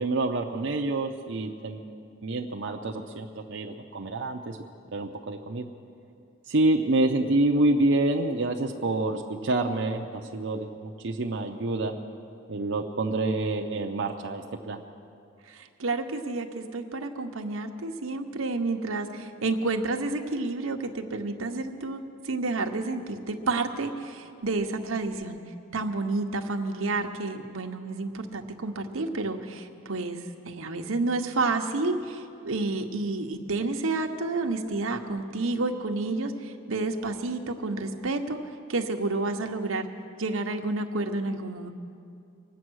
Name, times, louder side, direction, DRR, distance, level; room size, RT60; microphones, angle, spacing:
voice 1, 0.0-1.9 2.2-4.6 4.9-5.7 6.5-12.0 12.5-14.8, right 2 dB, 65° right, 2 dB, 0.7 m, -27 dB
voice 2, 15.5-25.4 25.7-38.4 38.7-39.9 40.2-41.7, right 3 dB, 90° right, 5 dB, 1.0 m, -30 dB
24.0 x 8.5 x 6.3 m, 2.5 s
head